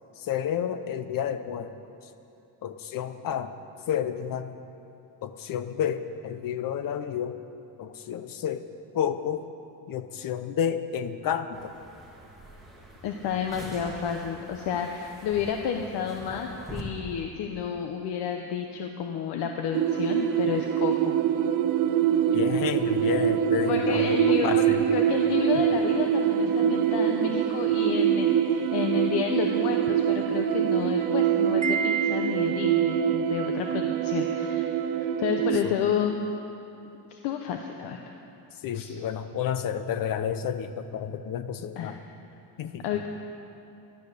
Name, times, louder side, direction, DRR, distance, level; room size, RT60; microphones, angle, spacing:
voice 1, 0.2-1.7 2.6-3.5 3.9-4.5 5.2-7.4 7.8-8.6 8.9-9.5 9.9-11.8 22.3-24.8 35.6-35.8 38.6-42.0 42.6-43.0, left 8 dB, 55° left, 11 dB, 0.9 m, -30 dB
sound 1, 11.5-16.8, right 1 dB, ahead, 2.1 m, -45 dB
voice 2, 13.0-21.2 23.6-36.3 37.1-38.1 38.7-38.9 41.8-41.9 42.8-43.1, left 7 dB, 80° left, 4 dB, 1.0 m, -31 dB
sound 2, 19.7-35.6, right 9 dB, 55° right, 0.6 m, -24 dB
Wind chime, 31.6-33.0, right 7 dB, 15° right, 0.7 m, -31 dB
13.5 x 12.0 x 6.8 m, 2.8 s
cardioid pair, 145°, 40 cm